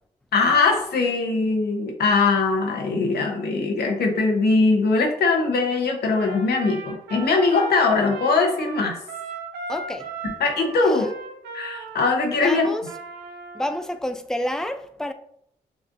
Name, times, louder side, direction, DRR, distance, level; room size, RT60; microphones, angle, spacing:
voice 1, 0.3-8.9 10.2-11.1 11.5-12.6, left 3 dB, 70° left, 0.9 m, -21 dB
Trumpet, 6.0-13.8, right 4 dB, 90° right, 0.7 m, -37 dB
voice 2, 9.7-10.1 10.8-11.1 12.4-12.9 13.5-15.1, left 1 dB, 5° left, 0.5 m, -29 dB
6.1 x 2.4 x 2.5 m
supercardioid pair, 50°, 17 cm